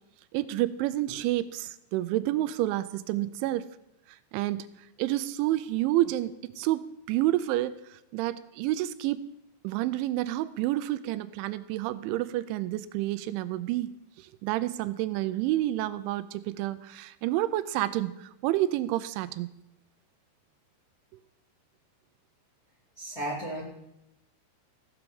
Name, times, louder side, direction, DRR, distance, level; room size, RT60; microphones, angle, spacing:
voice 1, 0.3-3.7 4.3-4.7 5.0-9.3 9.6-13.9 14.2-19.5, right 15 dB, 90° right, 14 dB, 3.0 m, -29 dB
voice 2, 23.0-23.6, right 1 dB, 30° left, -5 dB, 1.8 m, -34 dB
15.5 x 5.9 x 6.9 m, 0.86 s
omnidirectional pair, 5.3 m